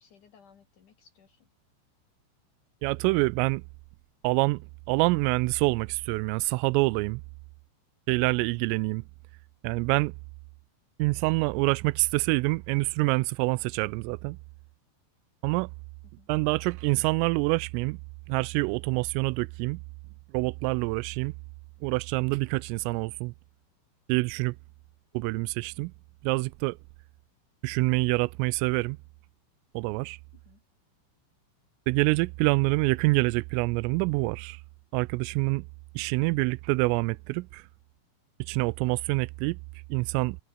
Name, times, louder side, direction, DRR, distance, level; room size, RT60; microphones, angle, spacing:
voice 1, 0.0-1.5 8.5-8.9 16.0-16.3 30.3-30.6, left 7 dB, 55° left, 2.7 m, -59 dB
voice 2, 2.8-3.6 4.2-7.2 8.1-9.0 9.6-10.2 11.0-14.4 15.4-15.7 16.3-18.0 18.3-19.8 20.3-21.3 21.8-23.3 24.1-24.6 25.1-25.9 26.2-26.8 27.6-29.0 29.7-30.2 31.9-34.6 34.9-35.6 36.0-37.6 38.5-39.6 39.9-40.4, right 25 dB, 90° right, 3.2 m, -26 dB
omnidirectional pair, 5.8 m